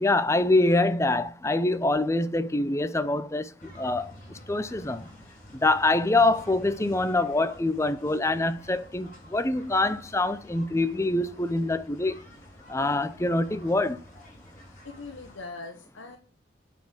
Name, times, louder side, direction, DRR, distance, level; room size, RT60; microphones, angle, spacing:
voice 1, 0.0-3.5 3.8-4.0 4.5-5.0 5.6-12.2 12.7-14.0, left 2 dB, 15° left, 0.5 m, -25 dB
sound 1, 3.6-15.4, equal, 40° left, 5.5 m, -50 dB
voice 2, 14.8-16.2, left 3 dB, 80° left, 1.1 m, -41 dB
9.1 x 4.4 x 7.4 m
head